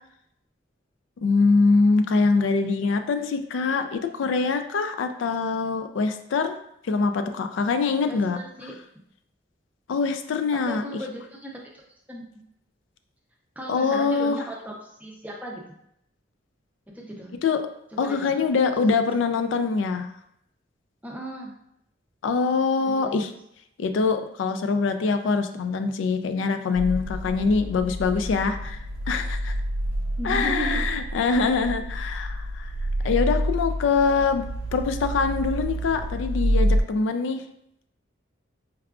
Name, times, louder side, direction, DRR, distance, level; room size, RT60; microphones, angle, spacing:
voice 1, 1.2-6.6 6.8-8.4 9.9-10.8 13.7-14.4 17.4-17.6 18.0-20.1 22.2-23.3 23.8-29.5 30.2-32.7 33.0-34.4 34.7-37.4, left 4 dB, 75° left, 8 dB, 0.3 m, -24 dB
voice 2, 8.1-8.7 10.5-11.6 12.1-12.2 13.6-15.6 16.9-17.4 17.9-18.4 18.8-18.9 21.0-21.6 22.8-23.3 30.2-30.9 33.0-33.1, right 1 dB, 10° right, -1 dB, 0.5 m, -36 dB
sound 1, 26.7-36.8, equal, 85° right, 0.3 m, -28 dB
4.6 x 2.3 x 2.3 m, 0.75 s
head